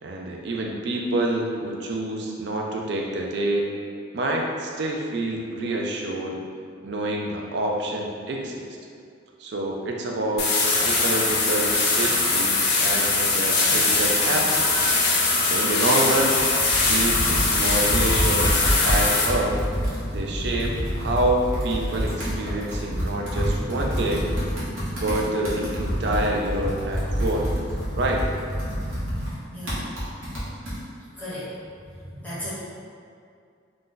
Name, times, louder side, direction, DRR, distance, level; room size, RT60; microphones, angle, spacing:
voice 1, 0.0-3.7 4.1-6.4 6.8-8.8 9.4-14.7 15.4-16.4 16.9-19.6 20.1-24.3 25.0-27.5 28.0-28.2, right 1 dB, 55° right, 0 dB, 0.4 m, -27 dB
sound 1, 10.4-19.2, left 3 dB, 50° left, 0.5 m, -21 dB
Computer keyboard, 16.2-30.8, equal, 85° right, 1.0 m, -28 dB
voice 2, 29.5-29.8 31.1-31.5 31.8-32.5, equal, 10° left, -12 dB, 0.7 m, -36 dB
2.5 x 2.2 x 3.8 m, 2.3 s
head